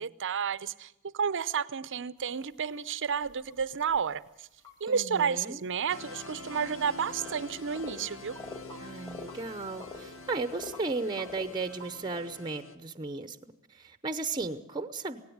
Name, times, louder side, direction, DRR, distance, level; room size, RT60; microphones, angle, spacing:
voice 1, 0.0-4.2 4.8-8.4, right 6 dB, 60° right, 17 dB, 0.7 m, -31 dB
sound 1, 2.2-2.3 2.7-4.0 4.6-5.0 5.2-5.3 6.5-6.6 7.1-7.4 7.7-8.0 8.3-9.4 9.8-10.9 11.2-12.2, left 3 dB, 15° left, 2.0 m, -45 dB
voice 2, 4.9-5.6 8.8-13.4 13.7-15.2, right 3 dB, 20° right, 11 dB, 0.8 m, -35 dB
sound 2, 5.9-12.7, left 3 dB, 65° left, 1.6 m, -46 dB
17.5 x 17.0 x 9.4 m, 0.84 s
head